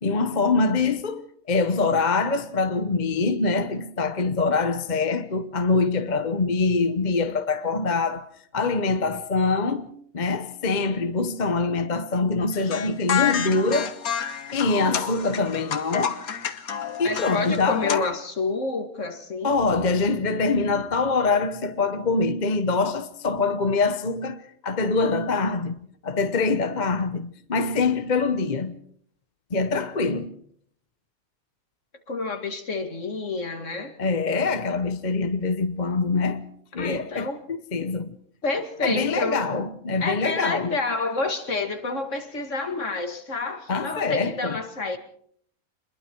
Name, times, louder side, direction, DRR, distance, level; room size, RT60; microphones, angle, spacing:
voice 1, 0.0-8.3 8.5-14.0 14.5-16.2 17.0-18.1 19.4-25.8 26.0-28.8 29.5-30.4 34.0-36.4 36.7-38.2 38.8-40.7 43.7-44.6, left 4 dB, 35° left, 1.0 m, -24 dB
sound 1, 12.5-18.0, left 7 dB, 85° left, 1.7 m, -29 dB
voice 2, 17.0-19.6 32.1-34.0 36.8-37.4 38.4-39.4 40.0-45.0, left 3 dB, 60° left, 2.4 m, -29 dB
26.5 x 21.5 x 4.5 m
omnidirectional pair, 1.5 m